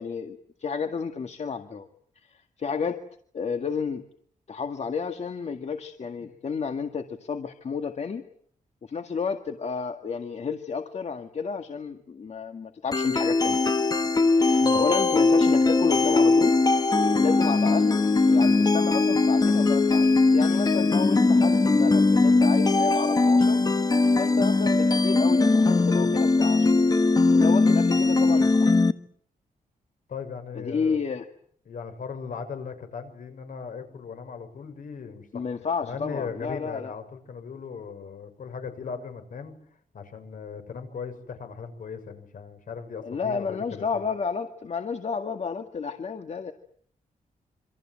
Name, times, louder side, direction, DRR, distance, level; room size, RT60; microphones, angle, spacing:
voice 1, 0.0-1.9 2.2-3.0 3.3-4.0 4.5-8.2 8.9-13.7 14.4-16.6 17.1-18.0 18.3-20.1 20.3-23.6 24.2-26.8 27.3-28.7 30.5-31.3 35.3-36.9 43.0-46.5, left 5 dB, 50° left, 6 dB, 1.9 m, -31 dB
sound 1, 12.9-28.9, left 3 dB, 25° left, 1.4 m, -20 dB
voice 2, 30.1-31.0 31.7-35.4 35.8-39.5 39.9-44.0, left 6 dB, 70° left, 8 dB, 6.4 m, -38 dB
27.5 x 25.5 x 7.6 m, 0.63 s
wide cardioid pair, 115°, 14 cm